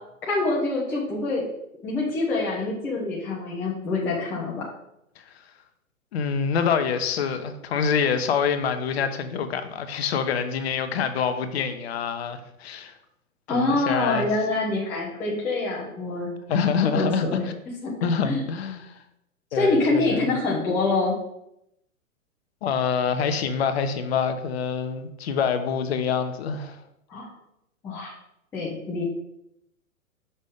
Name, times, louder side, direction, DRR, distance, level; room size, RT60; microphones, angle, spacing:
voice 1, 0.2-1.4 1.8-4.6 13.5-17.5 17.8-17.9 18.2-18.4 19.5-21.2 27.1-27.3 27.8-28.1 28.5-29.0, left 3 dB, 5° left, -4 dB, 0.4 m, -25 dB
voice 2, 6.1-12.9 13.5-14.3 16.5-17.5 18.0-19.0 19.5-20.3 22.6-26.8, left 6 dB, 45° left, 9 dB, 0.7 m, -26 dB
6.2 x 5.4 x 3.5 m, 0.81 s
figure-of-eight pair, 115°, 42 cm